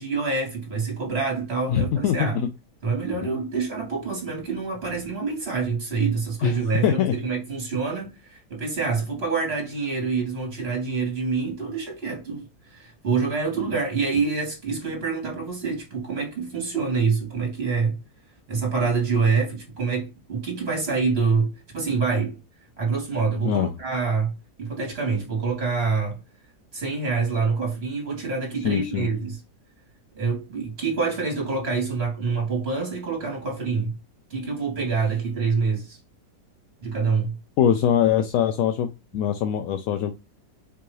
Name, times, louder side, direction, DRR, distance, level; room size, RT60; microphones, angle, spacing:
voice 1, 0.0-2.4 2.8-18.0 18.5-22.4 22.8-26.2 26.7-29.4 30.1-34.0 34.3-36.0 36.8-37.4, right 4 dB, 40° right, 1.7 m, -26 dB
voice 2, 1.7-2.5 6.4-6.6 6.8-7.1 23.4-23.7 28.6-29.1 37.6-40.1, left 9 dB, 70° left, 0.8 m, -22 dB
4.5 x 2.7 x 3.1 m
omnidirectional pair, 1.8 m